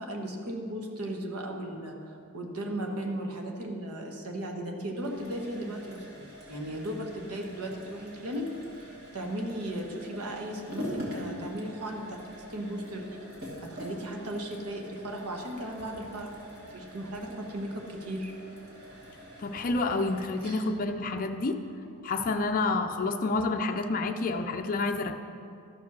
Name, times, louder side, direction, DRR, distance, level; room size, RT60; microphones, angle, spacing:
voice 1, 0.0-8.5 8.8-13.2 13.6-16.3 16.7-18.3, right 1 dB, 85° right, 2 dB, 1.3 m, -36 dB
sound 1, 4.9-22.6, equal, 50° right, 2.5 m, -45 dB
voice 2, 19.4-21.6 22.0-25.2, left 3 dB, 40° left, 4 dB, 0.4 m, -29 dB
13.0 x 4.8 x 6.1 m, 2.5 s
head